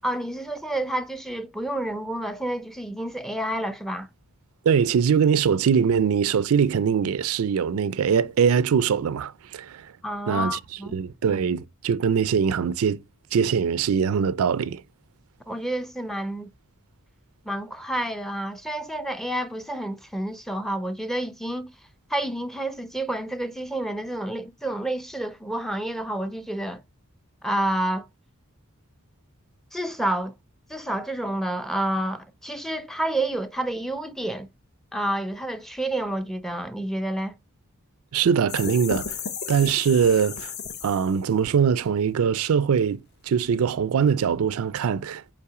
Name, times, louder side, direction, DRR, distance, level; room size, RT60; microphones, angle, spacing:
voice 1, 0.0-4.1 10.0-11.0 15.5-16.5 17.4-21.7 22.1-26.8 27.4-28.1 29.7-30.3 30.7-34.5 34.9-37.4, right 1 dB, ahead, 0.4 m, -29 dB
voice 2, 4.7-9.9 10.3-10.6 10.9-13.0 13.3-14.8 38.1-39.2 39.5-40.5 40.8-45.3, right 7 dB, 75° right, 0.4 m, -22 dB
sound 1, 38.5-41.3, left 6 dB, 50° left, 0.7 m, -34 dB
5.7 x 4.3 x 4.8 m
head